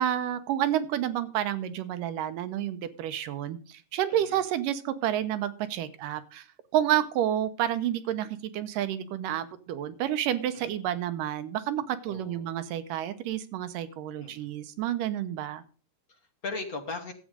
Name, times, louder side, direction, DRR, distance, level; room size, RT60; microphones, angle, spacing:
voice 1, 0.0-6.5 6.7-15.6, right 11 dB, 85° right, 11 dB, 2.5 m, -30 dB
voice 2, 4.1-4.4 10.5-10.7 12.1-12.5 14.2-14.5 16.1-17.1, left 3 dB, 45° left, 4 dB, 1.3 m, -39 dB
12.5 x 8.3 x 5.0 m, 0.38 s
omnidirectional pair, 3.8 m